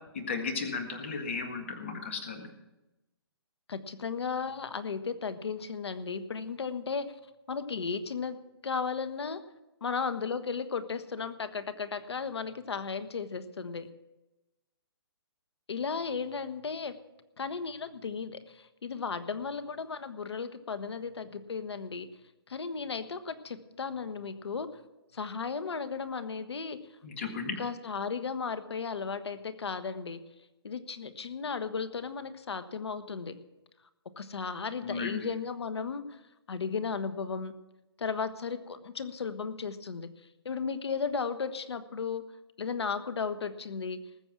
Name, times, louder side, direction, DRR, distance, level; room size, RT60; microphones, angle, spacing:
voice 1, 0.1-2.5 27.0-27.6 34.8-35.3, left 4 dB, 30° left, 5 dB, 1.7 m, -35 dB
voice 2, 3.7-7.1 7.5-8.4 8.6-9.4 9.8-13.9 15.7-17.0 17.4-22.1 22.5-24.7 25.1-26.8 27.6-30.2 30.6-33.4 34.2-36.2 36.5-37.5 38.0-40.1 40.4-42.2 42.6-44.0, left 5 dB, 85° left, 11 dB, 1.4 m, -35 dB
19.5 x 7.3 x 6.0 m, 1.0 s
hypercardioid pair, 180°, 13 cm